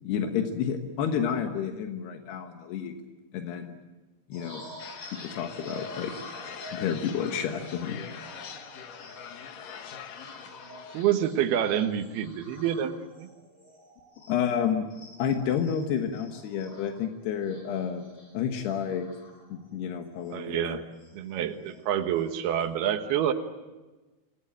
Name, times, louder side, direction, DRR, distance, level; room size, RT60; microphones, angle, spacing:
voice 1, 0.0-2.9 3.3-3.8 4.3-4.6 5.2-6.1 6.7-8.1 14.3-14.9 15.2-18.0 18.3-19.1 19.5-20.8, left 8 dB, 85° left, 5 dB, 3.5 m, -30 dB
sound 1, 4.3-14.6 14.9-19.8 20.2-20.4 20.7-21.8 22.2-22.7, left 1 dB, 20° left, 8.2 m, -49 dB
sound 2, 4.8-11.0, left 8 dB, 65° left, 2.9 m, -43 dB
voice 2, 10.9-13.3 20.3-20.8 21.1-23.3, right 10 dB, 75° right, 7 dB, 3.3 m, -27 dB
27.0 x 19.5 x 9.0 m, 1.2 s
omnidirectional pair, 4.6 m